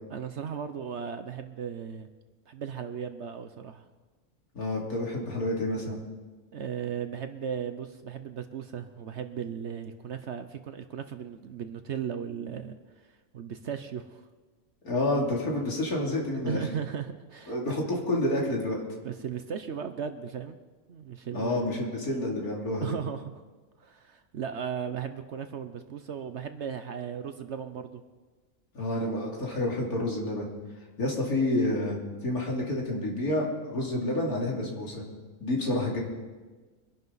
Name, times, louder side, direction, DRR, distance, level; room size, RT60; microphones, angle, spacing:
voice 1, 0.1-2.1 2.5-3.8 6.5-12.8 13.3-14.3 16.5-17.7 19.0-20.6 20.9-21.7 22.8-23.4 23.8-28.0, right 7 dB, 55° right, 9 dB, 0.9 m, -36 dB
voice 2, 4.5-6.0 14.8-16.6 17.5-18.8 21.3-22.9 28.7-30.5 31.0-35.0 35.4-36.0, left 1 dB, 75° left, -2 dB, 3.3 m, -29 dB
24.5 x 11.0 x 4.0 m, 1.3 s
omnidirectional pair, 1.6 m